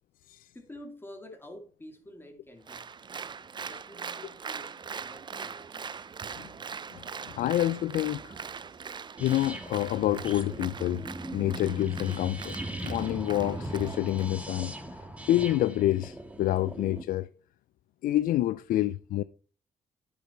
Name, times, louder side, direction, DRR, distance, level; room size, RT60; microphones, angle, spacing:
voice 1, 0.5-2.9 3.7-5.9, left 1 dB, 15° left, 2.5 m, -48 dB
Applause, 2.7-14.3, right 6 dB, 35° right, 0.4 m, -41 dB
voice 2, 7.4-8.3 9.2-11.0 11.3-12.6 12.8-14.7 15.3-17.3 18.0-19.2, left 14 dB, 85° left, 0.4 m, -27 dB
sound 1, 9.2-17.0, right 1 dB, 10° right, 1.5 m, -39 dB
9.6 x 7.0 x 4.4 m
cardioid pair, 95°, 14 cm